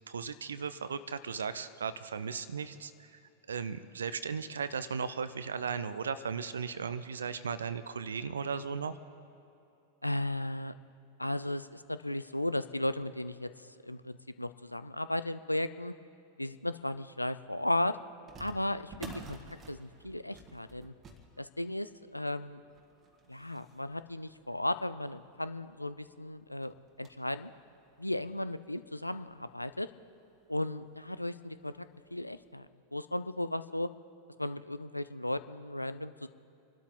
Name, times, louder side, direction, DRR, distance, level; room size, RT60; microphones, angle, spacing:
voice 1, 0.1-3.2 3.5-9.0, right 6 dB, 70° right, 13 dB, 0.6 m, -36 dB
voice 2, 10.0-10.7 11.2-15.9 16.4-18.0 18.4-20.9 21.4-22.6 23.3-27.5 28.0-29.9 30.5-31.9 32.1-32.7 32.9-33.9 34.4-36.3, left 1 dB, 85° left, 13 dB, 0.5 m, -35 dB
sound 1, 18.3-25.2 25.8-25.9 26.1-26.2 26.6-27.3 27.9-28.0 28.8-28.9 29.3-29.4 30.8-31.0 31.4-31.5 32.1-32.3, right 2 dB, 25° right, 1.6 m, -52 dB
26.5 x 12.5 x 3.8 m, 2.8 s
figure-of-eight pair, 90°, 0 cm